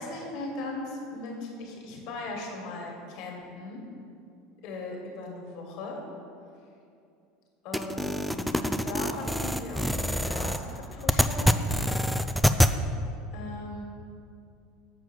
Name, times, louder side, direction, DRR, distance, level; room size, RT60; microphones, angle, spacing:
voice 1, 0.0-3.8 4.6-6.0 7.6-11.6 13.3-13.8, left 2 dB, 60° left, 0 dB, 1.7 m, -38 dB
sound 1, 7.7-12.7, equal, ahead, 0.4 m, -26 dB
7.5 x 4.7 x 6.2 m, 2.5 s
hypercardioid pair, 90°, 0 cm